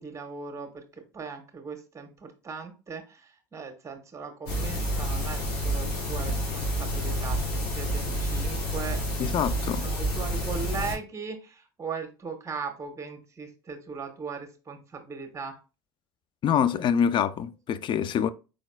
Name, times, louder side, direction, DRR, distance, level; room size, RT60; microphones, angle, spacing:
voice 1, 0.0-9.5 9.8-15.6, right 5 dB, 25° right, 1.4 m, -39 dB
sound 1, 4.5-10.9, equal, 85° left, 2.7 m, -29 dB
voice 2, 9.2-9.9 16.4-18.3, left 8 dB, 45° left, 0.4 m, -25 dB
4.8 x 4.0 x 2.4 m
supercardioid pair, 90°, 12 cm